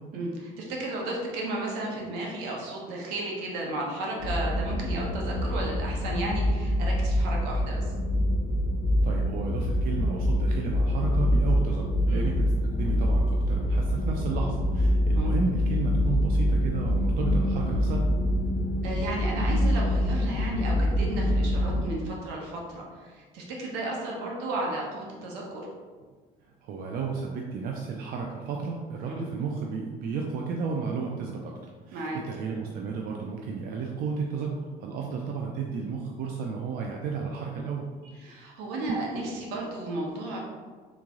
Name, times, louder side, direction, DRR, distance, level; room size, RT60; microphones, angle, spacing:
voice 1, 0.1-7.9 12.1-12.3 15.1-15.3 18.8-25.7 29.1-29.3 31.9-32.2 38.1-40.4, right 2 dB, 85° right, -2 dB, 1.1 m, -34 dB
sound 1, 4.2-21.9, left 1 dB, 85° left, 0.7 m, -25 dB
voice 2, 9.0-18.1 26.6-31.5 31.9-34.5 34.8-37.9 38.9-39.0, right 5 dB, 60° right, 0 dB, 0.5 m, -33 dB
3.5 x 3.2 x 3.7 m, 1.5 s
cardioid pair, 105°, 17 cm